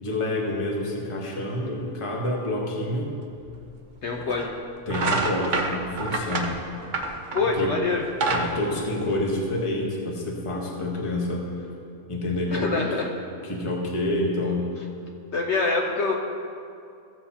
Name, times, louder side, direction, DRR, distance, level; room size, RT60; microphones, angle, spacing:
voice 1, 0.0-3.1 4.1-4.3 4.9-6.6 7.5-7.8 8.3-11.5 12.1-12.9 13.3-14.7, left 1 dB, 20° left, -2 dB, 1.1 m, -28 dB
sound 1, 3.5-3.6 4.3-4.5 4.9-7.6 8.0-9.6, right 2 dB, 50° right, 0.6 m, -27 dB
voice 2, 4.0-4.5 7.3-8.0 12.5-13.1 15.3-16.2, left 4 dB, 60° left, 0 dB, 0.8 m, -25 dB
14.5 x 7.7 x 2.8 m, 2.5 s
omnidirectional pair, 1.6 m